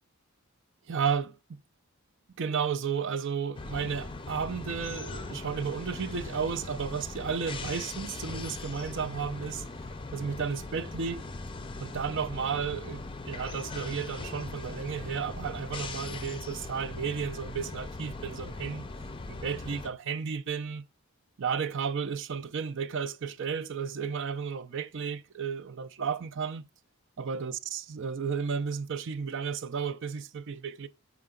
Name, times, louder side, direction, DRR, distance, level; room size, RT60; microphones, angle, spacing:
voice 1, 0.9-1.4 2.4-9.6 10.1-11.2 11.8-18.8 19.3-20.8 21.4-26.6 27.2-30.9, right 6 dB, 55° right, 0.5 m, -33 dB
industrial ambience quiet factory presses steam release, 3.5-19.9, left 3 dB, 25° left, 0.5 m, -40 dB
6.6 x 4.8 x 3.7 m
head